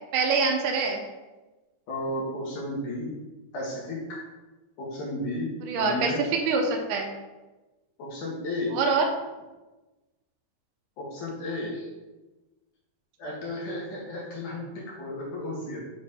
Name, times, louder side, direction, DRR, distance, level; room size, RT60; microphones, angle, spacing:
voice 1, 0.1-1.0 5.7-7.1 8.7-9.1, right 4 dB, 80° right, 2 dB, 1.8 m, -25 dB
voice 2, 1.9-3.1 3.5-4.2 4.8-6.2 8.0-8.7 11.0-11.9 13.2-15.9, left 1 dB, 60° left, -4 dB, 2.7 m, -33 dB
6.9 x 4.5 x 4.3 m, 1.1 s
omnidirectional pair, 4.7 m